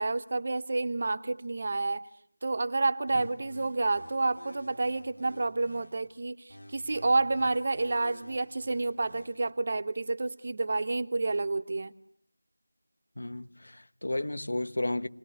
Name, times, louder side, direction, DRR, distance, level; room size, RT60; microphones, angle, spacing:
voice 1, 0.0-2.1 2.4-11.9, right 3 dB, 30° right, 1.1 m, -29 dB
sound 1, 3.1-6.1 6.5-9.5, left 1 dB, 85° left, 3.0 m, -51 dB
voice 2, 13.2-15.1, left 1 dB, 65° left, 1.4 m, -33 dB
28.0 x 20.5 x 9.9 m
figure-of-eight pair, 175°, 0 cm